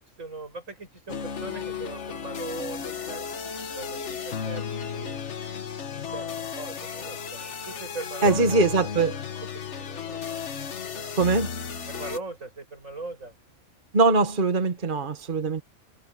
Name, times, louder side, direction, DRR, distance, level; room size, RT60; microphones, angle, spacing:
voice 1, 0.2-3.3 3.8-5.2 5.9-8.7 9.5-10.3 11.9-13.3, right 3 dB, 90° right, 8.0 m, -39 dB
sound 1, 1.1-12.2, left 7 dB, 65° left, 1.5 m, -34 dB
voice 2, 8.2-9.2 11.2-11.5 13.9-15.6, right 3 dB, 40° right, 1.5 m, -22 dB
omnidirectional pair, 1.3 m